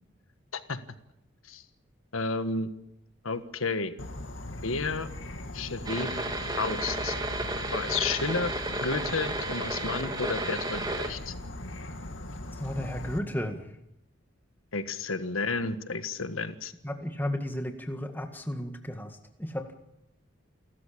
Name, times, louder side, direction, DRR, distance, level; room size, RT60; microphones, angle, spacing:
voice 1, 2.1-2.7 3.2-3.9 4.6-5.1 5.5-6.1 6.6-7.2 7.7-8.5 8.8-11.3 14.7-16.7, left 4 dB, 90° left, 10 dB, 1.5 m, -31 dB
Insect / Frog, 4.0-13.2, left 1 dB, 70° left, 2.3 m, -40 dB
sound 1, 5.8-11.1, right 2 dB, 20° right, 2.3 m, -33 dB
voice 2, 12.6-13.6 16.8-19.8, left 1 dB, 10° left, 5 dB, 1.8 m, -34 dB
29.0 x 13.5 x 8.6 m, 0.85 s
head